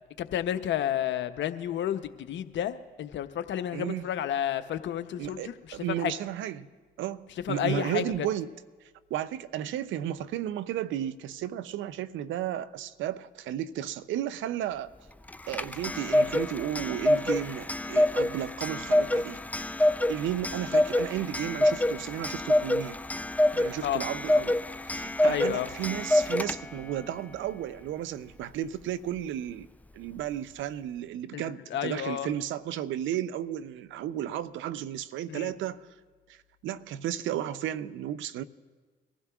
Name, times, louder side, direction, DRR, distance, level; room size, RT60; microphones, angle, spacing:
voice 1, 0.2-5.5 5.9-6.1 7.4-8.0 23.8-24.0 25.2-25.7 31.3-32.3 35.3-35.5, left 10 dB, 65° left, 0.8 m, -31 dB
voice 2, 3.7-4.1 5.2-6.7 7.0-8.5 9.1-14.9 15.5-19.4 20.1-23.0 23.5-29.7 29.9-35.9 36.3-36.4 36.6-38.4, right 11 dB, 75° right, 0.6 m, -33 dB
Clock, 15.3-26.9, left 1 dB, 5° left, 0.5 m, -27 dB
23.0 x 15.0 x 2.4 m
hypercardioid pair, 50°, 20 cm